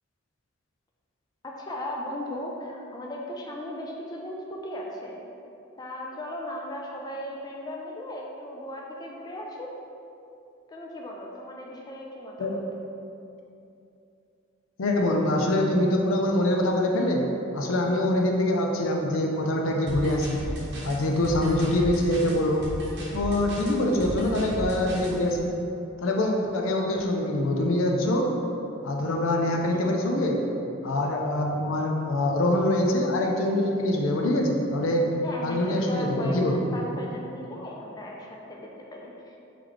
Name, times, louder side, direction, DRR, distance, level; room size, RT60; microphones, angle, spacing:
voice 1, 1.4-5.2 5.8-9.7 10.7-12.6 29.7-29.9 35.2-39.6, left 1 dB, 20° left, -2 dB, 0.3 m, -37 dB
voice 2, 14.8-17.3 17.5-20.4 20.8-22.6 23.1-25.5 26.0-28.3 28.8-30.4 30.8-35.1 35.4-36.6, left 1 dB, 85° left, 1 dB, 0.5 m, -24 dB
sound 1, 19.9-25.1, right 1 dB, 55° right, 0.8 m, -35 dB
3.2 x 3.1 x 3.8 m, 2.7 s
head